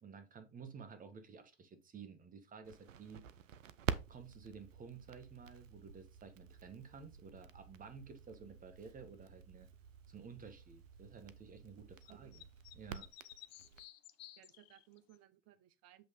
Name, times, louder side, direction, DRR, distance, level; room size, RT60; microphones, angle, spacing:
voice 1, 0.0-3.2 4.1-9.7 10.1-12.4 12.7-13.1, right 5 dB, 20° right, 1.5 m, -53 dB
Crackle, 2.6-13.8, right 8 dB, 80° right, 0.7 m, -48 dB
sound 1, 12.0-15.2, left 14 dB, 55° left, 0.9 m, -56 dB
voice 2, 12.1-12.4 14.4-16.1, right 14 dB, 40° right, 0.9 m, -62 dB
8.1 x 3.1 x 5.3 m
hypercardioid pair, 95°, 38 cm